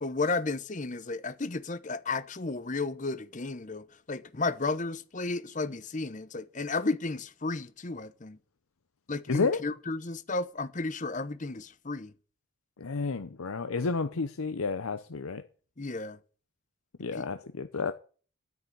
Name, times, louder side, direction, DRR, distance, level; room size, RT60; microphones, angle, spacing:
voice 1, 0.0-8.4 9.1-12.1 15.8-16.2 17.1-17.3, left 3 dB, 35° left, 0.8 m, -33 dB
voice 2, 9.3-9.6 12.8-15.4 17.0-17.9, left 4 dB, 80° left, 0.7 m, -31 dB
9.5 x 9.4 x 9.3 m
head